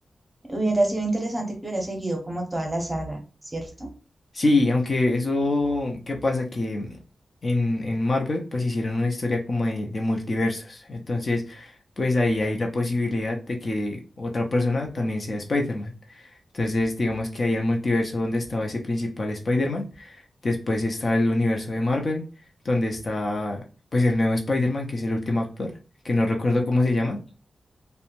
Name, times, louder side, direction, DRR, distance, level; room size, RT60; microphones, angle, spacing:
voice 1, 0.5-3.2 3.5-3.9, right 2 dB, 15° right, 1 dB, 0.7 m, -27 dB
voice 2, 4.3-7.0 7.4-22.2 22.6-23.6 23.9-25.7 26.0-27.2, left 2 dB, 45° left, 1 dB, 0.5 m, -25 dB
2.6 x 2.1 x 3.0 m, 0.34 s
wide cardioid pair, 120°, 0 cm